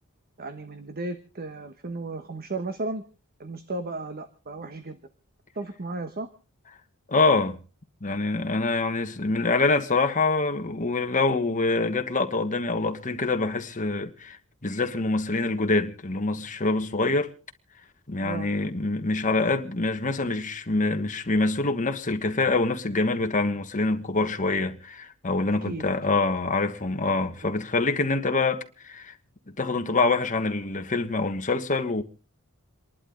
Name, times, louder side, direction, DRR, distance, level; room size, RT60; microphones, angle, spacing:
voice 1, 0.4-3.0 3.4-5.0 5.5-6.3 18.2-18.5 25.7-26.2 27.4-27.5, right 2 dB, 45° right, 1.2 m, -34 dB
voice 2, 7.1-7.6 8.0-17.3 18.1-29.1 29.6-32.0, left 3 dB, 35° left, 1.4 m, -25 dB
28.0 x 11.5 x 3.8 m
head